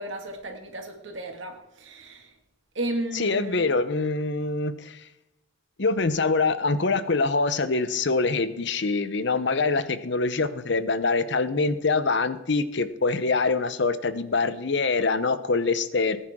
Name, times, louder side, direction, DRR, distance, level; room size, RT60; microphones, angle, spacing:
voice 1, 0.0-2.3 2.8-3.7, right 1 dB, 70° right, 3 dB, 2.0 m, -34 dB
voice 2, 3.1-5.0 5.8-16.2, left 3 dB, 60° left, 13 dB, 0.8 m, -24 dB
19.0 x 10.0 x 3.7 m, 0.89 s
head